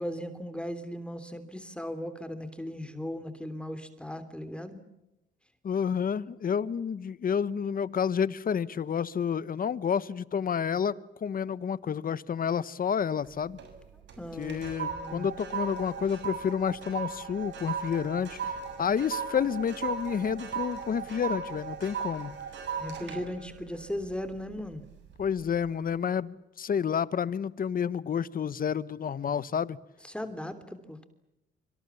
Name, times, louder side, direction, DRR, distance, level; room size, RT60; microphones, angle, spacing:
voice 1, 0.0-4.8 14.2-15.3 22.8-24.8 30.0-31.1, left 1 dB, 5° left, 10 dB, 3.2 m, -37 dB
voice 2, 5.6-13.6 14.4-22.3 25.2-29.8, left 7 dB, 45° left, 17 dB, 1.2 m, -30 dB
sound 1, 13.2-13.8 14.1-24.6 25.1-25.4, right 6 dB, 65° right, 7.0 m, -37 dB
26.5 x 25.5 x 7.1 m, 0.92 s
cardioid pair, 90°, 20 cm